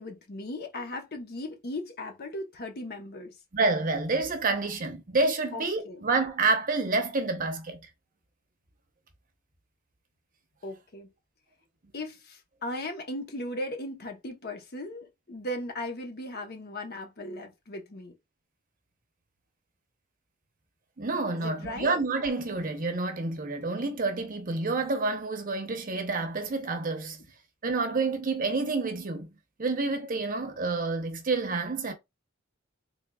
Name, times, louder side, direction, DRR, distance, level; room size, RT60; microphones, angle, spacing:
voice 1, 0.0-3.3 5.5-6.0 10.6-11.1 11.9-18.2 21.3-21.9, left 1 dB, 50° left, 0.9 m, -37 dB
voice 2, 3.5-7.9 21.0-27.2 27.6-29.3 29.6-31.9, right 3 dB, 40° right, 0.8 m, -28 dB
3.7 x 3.5 x 2.3 m
head